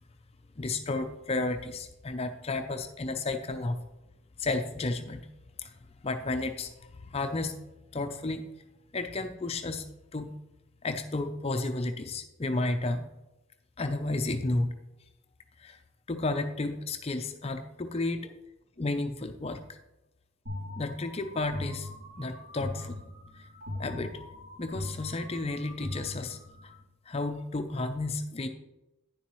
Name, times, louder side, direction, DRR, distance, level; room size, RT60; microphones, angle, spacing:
voice 1, 0.6-3.8 4.4-5.3 5.6-5.7 6.0-7.6 7.9-8.4 8.9-10.3 10.8-13.1 13.8-14.7 15.6-15.8 16.1-18.3 18.8-19.7 20.8-21.9 22.2-23.0 23.8-24.2 24.6-26.4 27.1-28.5, left 2 dB, 25° left, 7 dB, 0.5 m, -32 dB
sound 1, 20.5-26.8, left 1 dB, 65° right, 2.9 m, -40 dB
9.6 x 7.1 x 3.1 m, 0.98 s
head